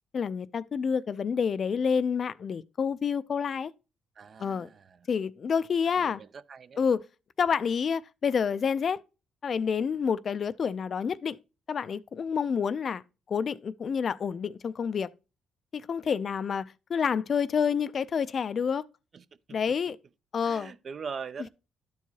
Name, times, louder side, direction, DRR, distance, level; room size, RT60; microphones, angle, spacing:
voice 1, 0.1-3.7 4.4-4.7 5.1-6.2 6.8-7.0 7.4-9.0 9.4-11.4 11.7-13.0 13.3-15.1 15.7-18.8 19.5-20.0 20.3-20.7, left 6 dB, 50° left, 0.4 m, -28 dB
voice 2, 4.2-4.8 6.0-6.8 19.1-19.2 20.4-21.5, right 5 dB, 45° right, 0.4 m, -41 dB
12.0 x 4.6 x 2.8 m
cardioid pair, 90°, 0 cm